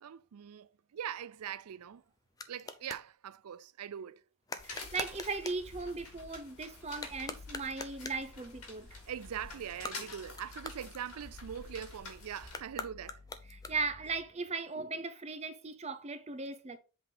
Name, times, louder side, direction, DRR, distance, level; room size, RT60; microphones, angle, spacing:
voice 1, 0.0-2.0 2.5-4.2 8.9-13.2, right 9 dB, 85° right, 0.4 m, -42 dB
sound 1, 1.4-3.1 4.5-5.7 6.9-8.3 9.7-11.5 12.5-14.1, left 3 dB, 15° left, 0.4 m, -45 dB
sound 2, 4.6-12.6, left 3 dB, 85° left, 2.4 m, -49 dB
voice 2, 4.6-9.0 13.5-16.8, right 4 dB, 30° right, 0.6 m, -38 dB
sound 3, 5.6-14.3, left 3 dB, 55° left, 1.0 m, -57 dB
7.7 x 4.0 x 3.8 m
head